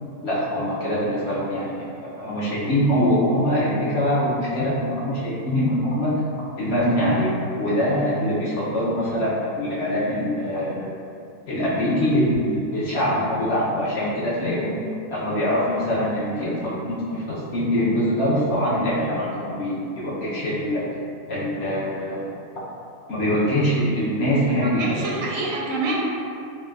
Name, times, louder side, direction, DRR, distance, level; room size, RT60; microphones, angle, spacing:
voice 1, 0.2-6.2 6.6-7.3 7.6-10.9 11.5-14.7 15.1-20.8 21.3-22.3 23.1-25.3, equal, 60° left, -8 dB, 0.8 m, -23 dB
voice 2, 24.6-26.0, right 2 dB, 75° right, -3 dB, 0.9 m, -27 dB
4.3 x 2.2 x 2.3 m, 2.4 s
omnidirectional pair, 1.5 m